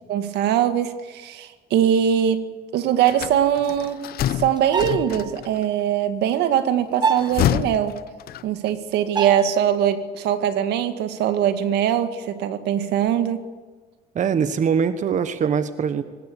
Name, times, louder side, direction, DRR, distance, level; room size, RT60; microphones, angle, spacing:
voice 1, 0.1-8.0 8.4-13.4, right 9 dB, 80° right, 9 dB, 2.1 m, -22 dB
sound 1, 3.1-5.6 7.0-8.8, left 12 dB, 65° left, 0.9 m, -27 dB
sound 2, 4.6-5.3 7.0-7.4 9.2-9.6, right 5 dB, 25° right, 0.7 m, -25 dB
voice 2, 14.1-16.0, right 7 dB, 45° right, 11 dB, 1.3 m, -22 dB
23.5 x 20.0 x 8.3 m, 1.4 s
cardioid pair, 110°, 17 cm